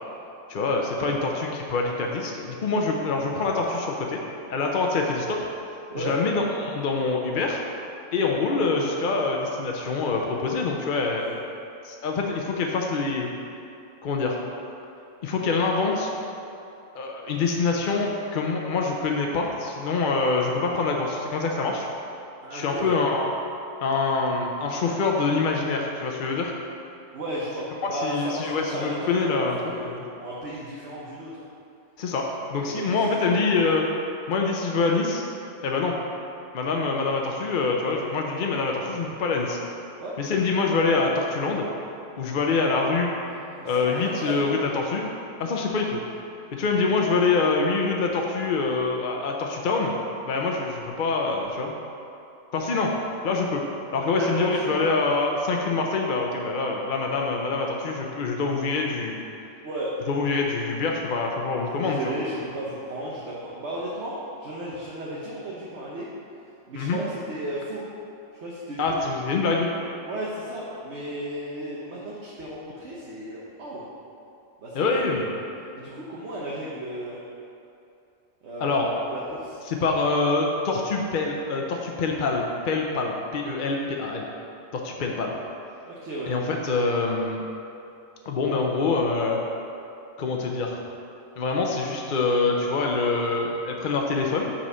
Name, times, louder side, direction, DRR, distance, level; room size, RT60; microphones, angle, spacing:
voice 1, 0.5-4.2 4.5-5.4 5.9-7.6 8.1-11.3 11.8-13.3 14.0-14.4 15.2-16.1 16.9-21.9 22.5-23.3 23.8-26.5 27.8-30.0 32.0-33.8 34.3-35.2 35.6-36.0 36.5-39.6 40.2-41.7 42.2-43.1 43.6-45.1 45.4-46.0 46.5-50.0 50.3-51.7 52.5-52.9 53.2-53.6 53.9-59.2 60.1-62.1 66.8-67.0 68.8-69.7 74.7-75.3 78.6-78.9 79.7-84.3 84.7-85.3 86.3-87.4 88.3-89.4 90.2-90.8 91.4-94.5, left 4 dB, 50° left, 0 dB, 0.6 m, -25 dB
voice 2, 22.4-22.9 27.1-31.4 32.7-33.5 40.0-40.1 43.3-44.4 46.9-47.0 54.1-54.8 59.6-60.0 61.8-64.1 64.4-66.1 66.7-67.8 68.4-69.1 70.0-73.8 74.6-74.9 75.7-77.2 78.4-79.6 85.0-85.1 85.8-86.3, right 1 dB, 60° right, -6 dB, 1.2 m, -34 dB
7.5 x 4.3 x 5.4 m, 2.7 s
omnidirectional pair, 1.4 m